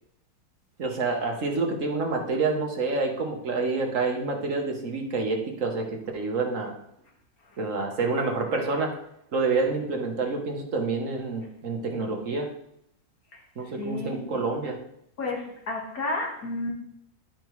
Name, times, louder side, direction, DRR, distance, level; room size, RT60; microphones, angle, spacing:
voice 1, 0.8-6.7 7.6-8.9 9.3-12.5 13.6-14.8, right 3 dB, 55° right, 2 dB, 1.4 m, -28 dB
voice 2, 13.3-14.3 15.2-16.7, left 2 dB, 65° left, 0 dB, 2.1 m, -32 dB
11.0 x 5.3 x 3.1 m, 0.74 s
omnidirectional pair, 1.7 m